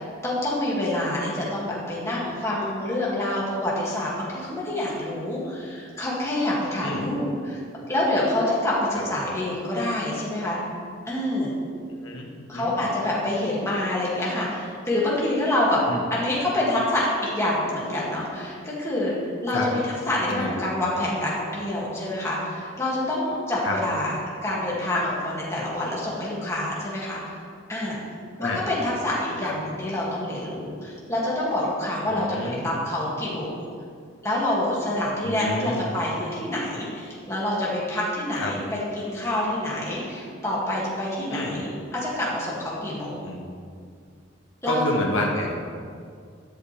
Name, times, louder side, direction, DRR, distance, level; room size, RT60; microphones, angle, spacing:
voice 1, 0.0-7.6 7.9-10.6 11.1-11.5 12.5-15.8 16.1-19.1 19.4-27.4 27.7-28.0 28.4-33.6 34.2-43.3 44.6-44.8, left 1 dB, 15° left, -7 dB, 2.6 m, -27 dB
voice 2, 12.0-12.8 15.9-16.0 19.5-19.7 20.3-20.6 23.6-23.8 28.4-28.6 29.4-29.5 32.1-32.8 35.2-35.9 38.4-38.5 41.3-41.6 43.2-43.5 44.6-45.5, left 1 dB, 80° left, -1 dB, 1.6 m, -29 dB
12.0 x 11.5 x 3.6 m, 2.2 s
head